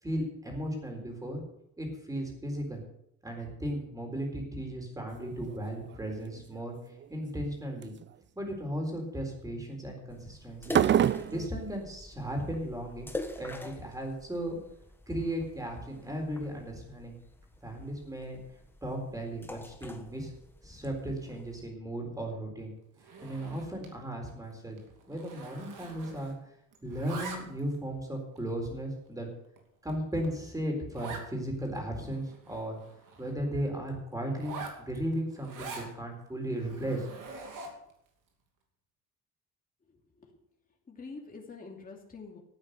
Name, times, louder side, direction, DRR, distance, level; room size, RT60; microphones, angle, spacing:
voice 1, 0.0-1.4 1.8-2.8 3.2-6.7 7.1-7.9 8.4-10.8 11.3-13.1 13.4-14.6 15.1-17.2 17.6-18.4 18.8-20.3 20.6-22.7 23.2-24.8 25.1-26.3 26.8-29.3 29.8-32.8 33.2-37.1, right 1 dB, 10° right, 2 dB, 4.0 m, -36 dB
sound 1, 5.2-5.6 5.9-6.4 7.0-7.4 7.8-8.0 10.7-11.5, right 10 dB, 35° right, 0.4 m, -26 dB
sound 2, 10.1-21.7, left 2 dB, 5° left, 1.4 m, -45 dB
Zipper (clothing), 23.0-24.0 24.3-24.5 24.8-26.5 26.7-27.8 28.4-28.5 29.1-29.2 29.6-29.7 29.9-30.0 30.2-30.3 30.9-31.3 31.7-31.8 32.0-33.3 34.3-35.9 36.5-37.9, right 4 dB, 75° right, 2.6 m, -44 dB
voice 2, 39.8-40.4 40.9-42.4, left 4 dB, 25° left, 0 dB, 2.7 m, -46 dB
12.5 x 8.9 x 6.7 m, 0.76 s
cardioid pair, 135°, 32 cm